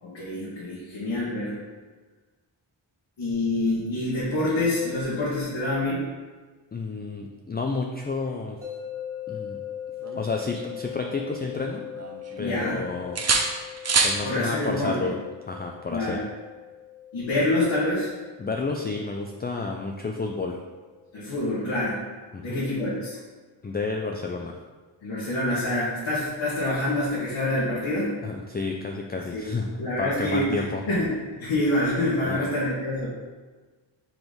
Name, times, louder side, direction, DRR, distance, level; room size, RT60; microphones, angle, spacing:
voice 1, 0.0-1.6 3.2-6.0 12.4-12.8 14.2-15.0 15.9-16.2 17.1-18.1 21.1-22.0 22.4-23.2 25.0-28.2 29.3-29.4 29.8-33.1, left 1 dB, 85° left, -9 dB, 1.8 m, -26 dB
voice 2, 6.7-8.6 9.3-9.6 10.2-11.8 12.4-13.2 14.0-15.2 15.5-16.2 18.4-20.6 22.3-22.6 23.6-24.6 28.2-29.7 30.0-30.8 32.2-32.5, left 4 dB, 25° left, 2 dB, 0.3 m, -30 dB
sound 1, 8.6-21.7, left 10 dB, 5° right, 1.6 m, -41 dB
sound 2, 10.0-11.6 11.9-12.7 13.2-14.2 16.1-16.3, right 4 dB, 35° right, 0.6 m, -27 dB
4.9 x 3.9 x 5.1 m, 1.3 s
wide cardioid pair, 155°, 45 cm